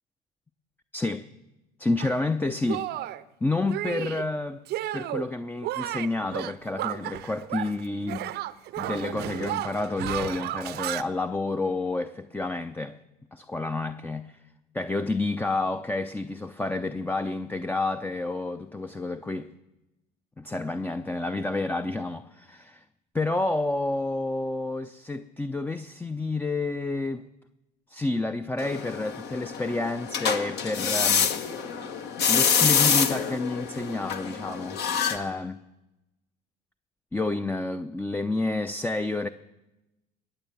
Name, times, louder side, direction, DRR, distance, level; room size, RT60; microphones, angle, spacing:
voice 1, 0.9-1.3 1.8-2.9 3.4-4.6 4.9-8.3 8.8-13.0 13.3-14.4 14.7-19.5 20.4-22.8 23.1-27.3 27.9-31.3 32.3-34.8 35.1-35.6 37.1-39.3, left 2 dB, 10° left, 0.6 m, -29 dB
Shatter, 2.0-2.2 2.7-3.2 3.7-4.3 4.7-5.3 5.6-7.8 8.1-11.0, right 14 dB, 55° right, 0.7 m, -33 dB
sound 1, 28.6-35.2, left 6 dB, 55° left, 1.5 m, -26 dB
21.0 x 8.0 x 7.2 m
hypercardioid pair, 65°, 21 cm